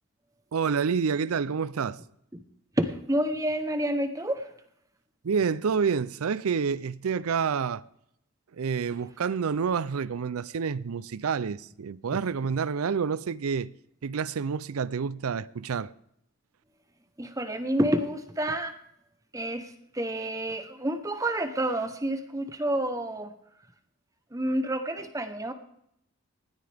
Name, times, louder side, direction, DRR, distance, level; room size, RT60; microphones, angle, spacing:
voice 1, 0.5-2.0 5.2-7.8 8.6-13.7 14.0-15.9, right 6 dB, 85° right, 0.5 m, -28 dB
voice 2, 2.8-4.5 17.2-18.8 19.3-19.7 19.9-23.3 24.3-25.5, right 1 dB, 15° right, 0.8 m, -29 dB
19.0 x 13.0 x 3.5 m
head